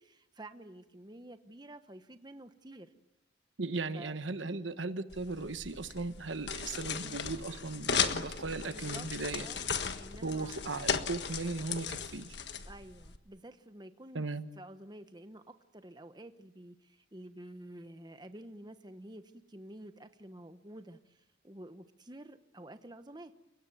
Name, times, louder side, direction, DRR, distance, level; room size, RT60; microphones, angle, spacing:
voice 1, 0.0-2.9 3.9-4.6 6.9-7.2 8.6-9.1 9.4-9.7 10.0-10.7 12.6-14.3 14.5-23.3, right 1 dB, 20° right, 9 dB, 1.1 m, -50 dB
voice 2, 3.6-9.5 10.2-12.4 14.1-14.5, right 3 dB, 80° right, 11 dB, 1.2 m, -37 dB
sound 1, 5.1-13.2, left 6 dB, 60° left, 1.5 m, -36 dB
30.0 x 17.0 x 9.3 m, 0.97 s
head